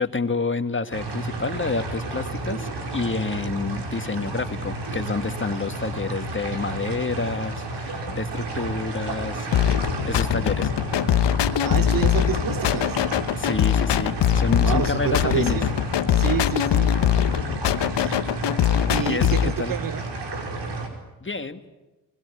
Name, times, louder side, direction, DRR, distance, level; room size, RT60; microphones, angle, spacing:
voice 1, 0.0-10.7 13.4-15.6 19.0-19.7 21.2-21.6, left 4 dB, 30° left, 2.0 m, -29 dB
sound 1, 0.9-20.9, right 2 dB, 80° right, 5.2 m, -32 dB
sound 2, 9.5-19.5, left 10 dB, 85° left, 1.0 m, -22 dB
voice 2, 11.6-13.0 14.6-15.7 16.1-17.0 17.9-18.2 18.9-20.0, right 9 dB, 55° right, 0.8 m, -28 dB
25.0 x 21.5 x 9.9 m
cardioid pair, 65°, 41 cm